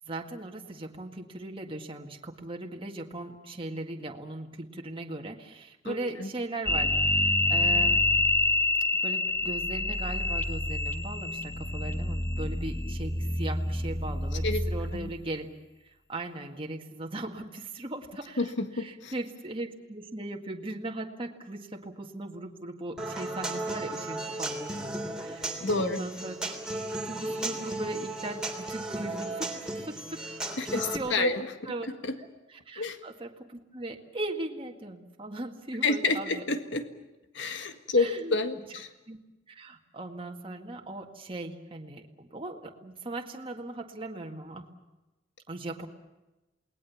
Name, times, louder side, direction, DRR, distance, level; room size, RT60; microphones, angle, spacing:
voice 1, 0.1-8.1 9.0-15.5 16.1-26.3 26.8-30.2 30.6-31.3 31.7-31.9 32.2-36.4 38.0-38.4 39.1-39.2 39.5-44.7 45.5-45.9, right 2 dB, 30° right, 2 dB, 1.9 m, -38 dB
voice 2, 5.9-6.3 14.4-14.6 14.9-15.1 18.4-19.1 25.6-26.0 30.6-31.5 32.0-32.1 32.8-33.0 35.8-36.9 37.3-38.9, left 3 dB, 75° left, 8 dB, 1.8 m, -29 dB
sound 1, 6.7-15.2, left 2 dB, 15° left, 1.4 m, -27 dB
Human voice / Acoustic guitar, 23.0-31.0, right 2 dB, 5° right, 3.2 m, -35 dB
28.5 x 19.5 x 7.2 m, 1.0 s
head